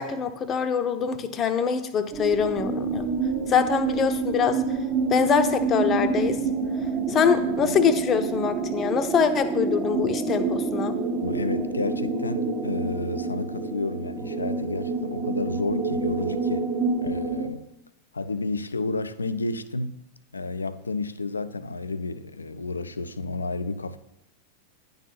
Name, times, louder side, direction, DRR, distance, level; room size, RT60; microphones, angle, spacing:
voice 1, 0.0-3.0 3.5-4.6 5.1-6.4 7.1-11.0, left 7 dB, 30° left, 0.7 m, -24 dB
sound 1, 2.1-17.5, right 4 dB, 35° right, 1.0 m, -27 dB
voice 2, 11.2-16.7 17.0-17.6 18.1-20.0 20.3-24.0, left 3 dB, 75° left, 0.4 m, -31 dB
9.9 x 3.9 x 5.8 m
figure-of-eight pair, 90°, 0 cm